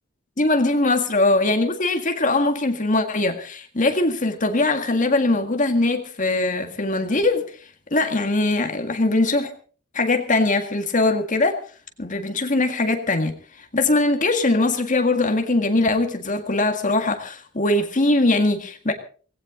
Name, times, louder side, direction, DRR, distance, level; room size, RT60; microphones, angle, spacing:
voice 1, 0.4-7.4 7.9-9.5 9.9-11.6 12.0-18.9, left 2 dB, 40° left, 1.8 m, -21 dB
19.0 x 17.0 x 3.8 m
head